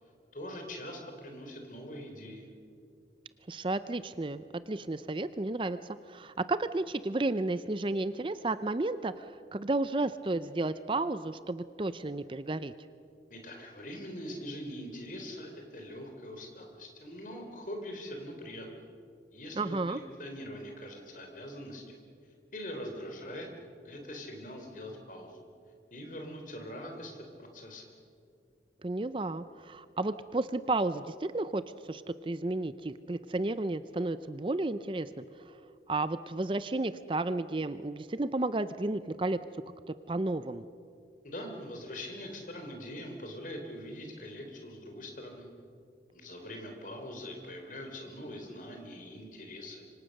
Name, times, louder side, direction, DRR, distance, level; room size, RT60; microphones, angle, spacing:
voice 1, 0.3-2.5 13.3-18.7 19.3-22.0 22.5-23.5 23.8-25.4 25.9-27.8 41.2-45.5 46.1-49.8, equal, 45° left, 3 dB, 3.8 m, -43 dB
voice 2, 3.5-12.7 19.6-20.0 28.8-35.6 35.9-39.4 40.1-40.7, right 2 dB, 30° right, 13 dB, 0.5 m, -32 dB
26.0 x 25.0 x 6.6 m, 2.4 s
head